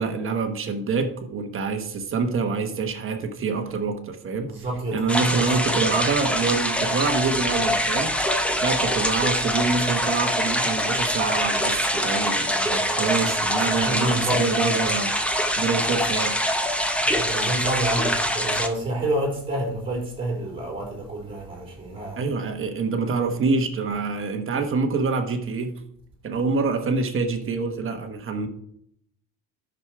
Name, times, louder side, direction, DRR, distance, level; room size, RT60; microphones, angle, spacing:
voice 1, 0.0-4.5 4.9-15.1 15.6-16.4 22.2-25.8 26.2-28.5, right 4 dB, 30° right, 1.2 m, -26 dB
voice 2, 4.4-6.0 8.9-9.1 12.6-14.6 17.0-22.2, right 1 dB, 15° right, 4.0 m, -29 dB
sound 1, 5.1-18.7, equal, 5° left, 0.6 m, -24 dB
10.5 x 6.4 x 4.6 m
cardioid pair, 175°, 39 cm